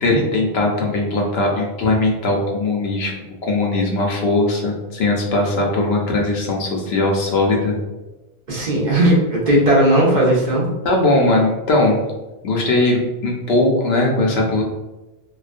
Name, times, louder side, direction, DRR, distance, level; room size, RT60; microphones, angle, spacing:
voice 1, 0.0-3.1 3.4-7.8 10.8-12.0 12.4-14.6, left 2 dB, 80° left, 0 dB, 0.8 m, -19 dB
voice 2, 8.5-10.7, right 1 dB, 50° right, -4 dB, 0.7 m, -16 dB
2.3 x 2.1 x 2.4 m, 1.1 s
omnidirectional pair, 1.1 m